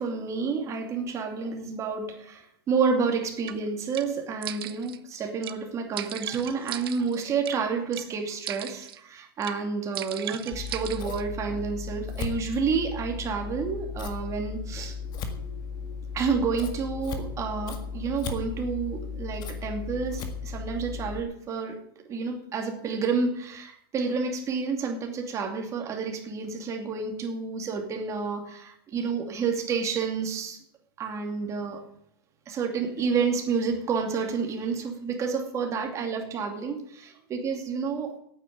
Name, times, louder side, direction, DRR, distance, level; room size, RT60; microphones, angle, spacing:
voice 1, 0.0-14.9 16.1-21.8 22.1-30.6 31.0-31.8 32.5-38.2, right 5 dB, 25° right, 3 dB, 2.5 m, -29 dB
sound 1, 3.5-3.6 3.9-4.1 4.4-5.0 5.4-5.6 6.0-7.6 7.9-8.1 8.5-9.0 9.4-9.6 10.0-11.2, right 11 dB, 80° right, 0.9 m, -37 dB
Scissors, 10.5-21.2, left 5 dB, 35° left, 1.8 m, -36 dB
9.2 x 9.1 x 9.4 m, 0.71 s
supercardioid pair, 140°, 12 cm